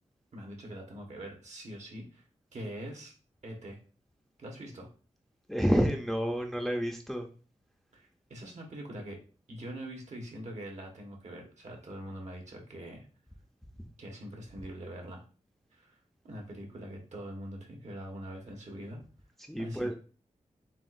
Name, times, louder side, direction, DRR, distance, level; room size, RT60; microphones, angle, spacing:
voice 1, 0.3-2.2 2.5-3.1 3.4-3.8 4.4-4.9 7.9-9.2 9.5-13.0 14.0-15.2 15.7-15.9 16.2-19.0 19.6-19.9, right 1 dB, 60° right, 0 dB, 1.3 m, -43 dB
voice 2, 5.5-7.3 19.5-19.9, equal, ahead, 3 dB, 0.5 m, -29 dB
7.3 x 2.4 x 2.5 m, 0.37 s
wide cardioid pair, 140°, 13 cm